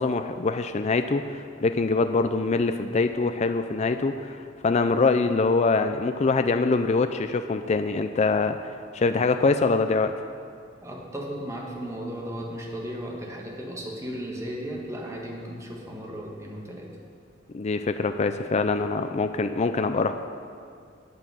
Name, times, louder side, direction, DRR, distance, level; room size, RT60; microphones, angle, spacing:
voice 1, 0.0-8.6 8.9-10.2 17.5-20.1, left 3 dB, 35° left, 8 dB, 0.4 m, -24 dB
voice 2, 10.8-16.9, equal, 15° right, -1 dB, 1.7 m, -35 dB
9.3 x 8.8 x 7.7 m, 2.3 s
head